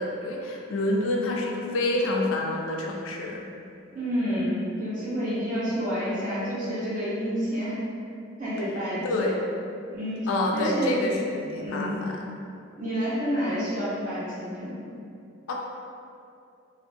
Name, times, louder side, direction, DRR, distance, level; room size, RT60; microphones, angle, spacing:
voice 1, 0.0-3.4 9.0-9.4 10.3-12.2 15.5-15.6, left 2 dB, 75° left, 0 dB, 0.3 m, -27 dB
voice 2, 3.9-7.8 8.4-9.4 9.9-11.0 11.6-12.0 12.8-14.8, equal, 40° right, -10 dB, 0.8 m, -29 dB
2.5 x 2.0 x 2.5 m, 2.5 s
head